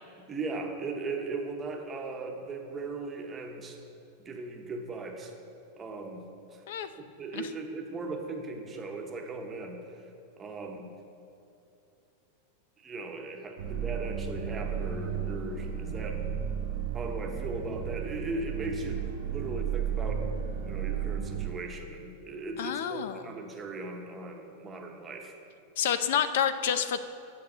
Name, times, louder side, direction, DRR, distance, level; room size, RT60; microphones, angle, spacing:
voice 1, 0.2-3.8 4.2-5.3 5.8-6.2 6.5-6.6 7.0-9.8 10.4-10.9 12.8-16.2 16.9-20.3 20.6-25.3, right 3 dB, 15° right, 2 dB, 1.0 m, -38 dB
sound 1, 13.6-21.5, right 8 dB, 65° right, 0.9 m, -33 dB
voice 2, 22.6-23.2 25.8-27.0, left 8 dB, 70° left, 11 dB, 0.6 m, -28 dB
8.5 x 6.5 x 7.8 m, 2.7 s
supercardioid pair, 150°, 0 cm